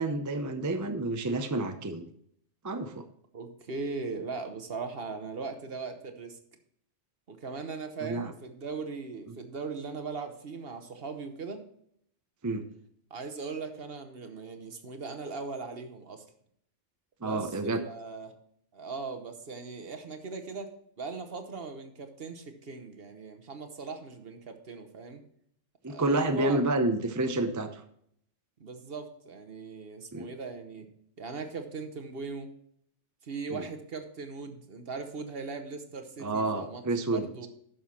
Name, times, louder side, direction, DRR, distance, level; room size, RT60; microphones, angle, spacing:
voice 1, 0.0-2.0 2.6-3.0 8.0-8.3 9.3-9.4 12.4-12.6 17.2-17.8 25.8-27.8 30.1-30.3 33.5-33.6 36.2-37.5, right 2 dB, 20° right, 7 dB, 0.5 m, -29 dB
voice 2, 3.3-6.4 7.3-11.6 13.1-16.2 17.2-18.3 18.7-25.2 25.9-26.6 28.6-30.9 31.2-32.5 33.2-37.5, right 4 dB, 55° right, 7 dB, 1.3 m, -39 dB
11.0 x 6.4 x 4.3 m, 0.68 s
omnidirectional pair, 1.3 m